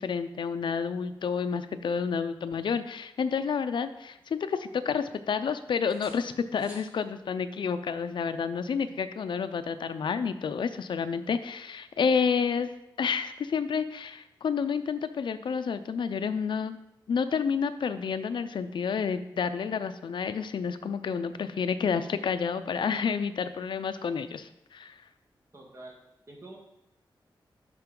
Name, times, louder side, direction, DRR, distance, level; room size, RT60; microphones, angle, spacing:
voice 1, 0.0-12.7 13.0-16.8 17.1-24.9, left 6 dB, 70° left, 10 dB, 0.5 m, -30 dB
sound 1, 3.3-4.3 4.7-5.5 5.9-7.0 8.8-9.0, equal, 15° right, 2.2 m, -55 dB
voice 2, 25.5-26.0 26.3-26.6, right 2 dB, 35° right, -1 dB, 1.7 m, -46 dB
11.5 x 4.4 x 3.8 m, 0.87 s
wide cardioid pair, 140°, 9 cm